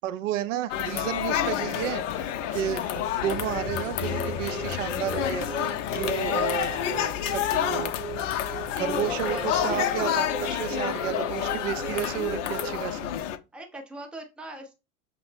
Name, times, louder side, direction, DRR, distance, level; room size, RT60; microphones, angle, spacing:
voice 1, 0.0-7.9 8.8-13.1, right 11 dB, 60° right, 0.5 m, -32 dB
sound 1, 0.7-13.4, left 10 dB, 55° left, 0.5 m, -29 dB
sound 2, 2.8-12.7, right 9 dB, 85° right, 0.8 m, -40 dB
sound 3, 3.2-9.6, left 6 dB, 20° left, 0.7 m, -40 dB
voice 2, 9.3-9.8 11.6-12.1 13.5-14.7, right 2 dB, ahead, 0.4 m, -41 dB
5.5 x 2.0 x 3.2 m
figure-of-eight pair, 90°, 44 cm